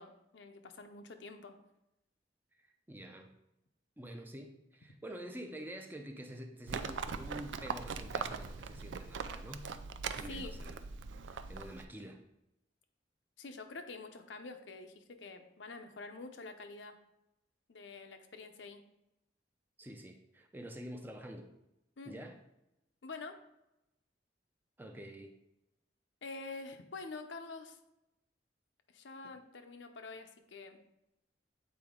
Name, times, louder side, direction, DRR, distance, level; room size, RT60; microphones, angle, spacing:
voice 1, 0.0-1.5 10.3-10.5 13.4-17.0 17.7-18.8 22.0-22.1 23.0-23.4 26.2-27.8 28.9-30.8, left 3 dB, 85° left, 6 dB, 0.7 m, -47 dB
voice 2, 2.6-3.3 4.0-9.7 10.2-10.9 11.3-12.2 19.8-21.5 22.1-22.4 24.8-25.3 29.2-29.4, right 1 dB, 10° right, 4 dB, 0.5 m, -47 dB
Livestock farm animals working animals, 6.7-11.8, right 5 dB, 85° right, 0.4 m, -41 dB
8.2 x 4.3 x 3.7 m, 0.89 s
head